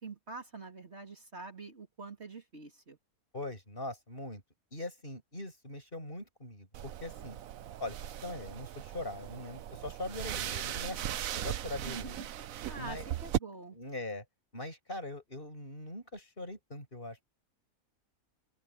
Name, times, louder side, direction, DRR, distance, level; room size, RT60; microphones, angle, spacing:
voice 1, 0.0-3.0 11.8-12.3 12.7-13.8, right 3 dB, 45° right, 3.4 m, -45 dB
voice 2, 3.3-4.4 4.7-7.4 7.8-8.0 8.2-12.2 12.8-13.1 13.7-14.2 14.5-17.2, left 2 dB, 40° left, 7.1 m, -41 dB
sound 1, 6.7-13.4, right 11 dB, 70° right, 1.1 m, -38 dB
open air
omnidirectional pair, 1.5 m